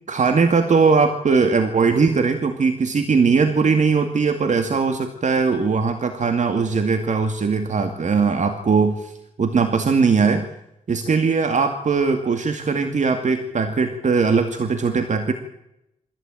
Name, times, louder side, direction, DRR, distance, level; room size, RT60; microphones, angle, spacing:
voice 1, 0.1-9.1 9.4-10.5 10.9-15.3, right 5 dB, 60° right, 6 dB, 2.3 m, -20 dB
24.5 x 16.0 x 9.1 m, 0.84 s
cardioid pair, 70°, 14 cm